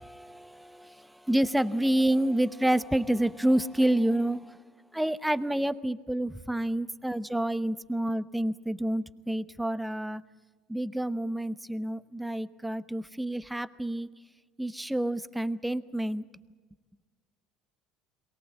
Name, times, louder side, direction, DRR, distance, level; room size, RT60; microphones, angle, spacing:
voice 1, 0.0-4.5 4.9-10.2 10.7-14.1 14.6-16.2, right 1 dB, 5° right, 13 dB, 0.9 m, -28 dB
23.0 x 18.0 x 8.1 m, 1.4 s
supercardioid pair, 90°, 0 cm